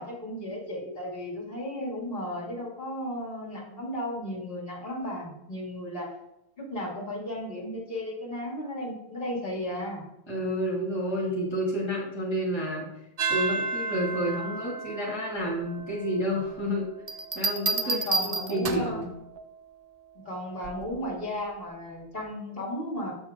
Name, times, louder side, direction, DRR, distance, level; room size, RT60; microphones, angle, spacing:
voice 1, 0.0-6.1 6.6-10.0 17.8-19.1 20.2-23.1, left 1 dB, 65° left, -5 dB, 2.7 m, -34 dB
voice 2, 10.3-12.9 13.3-16.9 17.4-19.1, equal, 25° left, -4 dB, 2.0 m, -30 dB
sound 1, 13.2-21.7, right 3 dB, 75° right, 0.8 m, -37 dB
sound 2, 17.1-19.0 20.6-21.0, right 3 dB, 45° right, 0.6 m, -29 dB
6.9 x 6.8 x 3.6 m, 0.85 s
omnidirectional pair, 1.0 m